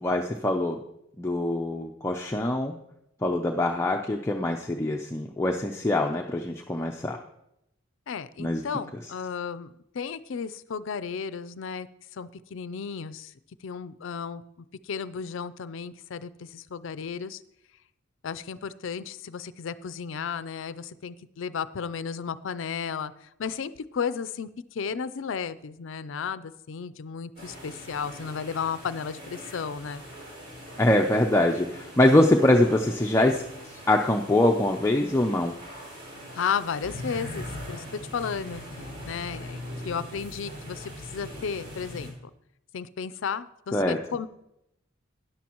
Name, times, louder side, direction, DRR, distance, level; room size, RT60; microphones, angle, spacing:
voice 1, 0.0-0.8 1.2-2.8 3.2-7.2 8.4-8.6 30.8-33.4 33.9-35.5 43.7-44.0, left 1 dB, 15° left, 1 dB, 0.5 m, -23 dB
voice 2, 8.1-11.9 12.1-13.3 13.6-17.4 18.2-30.0 36.3-38.6 39.0-42.3 42.7-44.3, left 6 dB, 70° left, 15 dB, 0.5 m, -34 dB
sound 1, 27.4-42.1, equal, 60° right, 3.8 m, -41 dB
13.5 x 10.0 x 3.0 m, 0.83 s
head